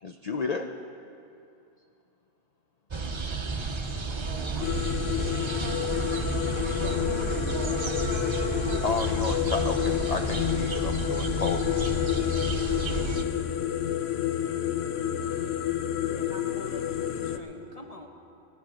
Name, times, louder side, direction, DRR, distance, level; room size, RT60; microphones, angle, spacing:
voice 1, 0.0-0.7 8.8-11.6, left 4 dB, 50° left, 5 dB, 0.5 m, -32 dB
sound 1, 2.9-13.2, right 3 dB, 30° right, 0.7 m, -32 dB
voice 2, 4.2-5.6 6.5-8.0 8.5-9.2, right 6 dB, 60° right, 8 dB, 1.0 m, -44 dB
sound 2, 4.6-17.4, left 11 dB, 65° left, 0.8 m, -29 dB
voice 3, 16.1-18.1, left 2 dB, 35° left, 3 dB, 1.1 m, -44 dB
16.5 x 10.0 x 6.3 m, 2.6 s
omnidirectional pair, 1.3 m